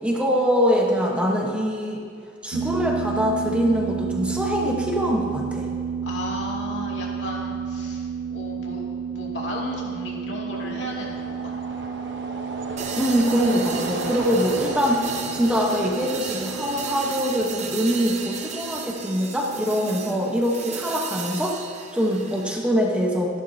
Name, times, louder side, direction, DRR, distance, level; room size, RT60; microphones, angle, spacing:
voice 1, 0.0-2.0 2.4-5.7 12.9-21.6 21.9-23.4, equal, 5° right, -2 dB, 1.1 m, -23 dB
sound 1, 2.5-20.9, right 7 dB, 85° right, 0.5 m, -32 dB
voice 2, 6.0-11.6, left 2 dB, 75° left, -4 dB, 2.6 m, -35 dB
sound 2, 10.5-19.1, right 2 dB, 65° right, 1.0 m, -36 dB
sound 3, 12.8-22.6, right 6 dB, 40° right, 0.8 m, -35 dB
15.0 x 11.0 x 2.8 m, 2.2 s
head